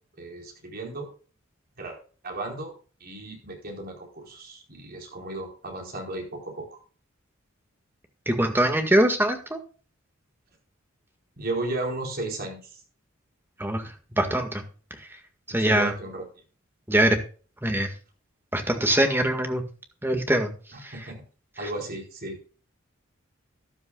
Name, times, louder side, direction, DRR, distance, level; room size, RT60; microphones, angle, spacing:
voice 1, 0.2-1.1 1.8-2.0 2.2-2.7 3.0-6.8 11.4-12.8 15.6-16.2 20.7-21.2 21.6-22.4, right 2 dB, 50° right, 1 dB, 4.4 m, -34 dB
voice 2, 8.3-9.6 13.6-14.6 15.0-15.2 15.5-15.9 16.9-17.2 17.6-17.9 18.5-19.6 20.0-20.5 20.8-21.1 21.6-21.7, right 1 dB, 10° right, 6 dB, 1.8 m, -23 dB
13.0 x 12.0 x 2.4 m, 0.38 s
head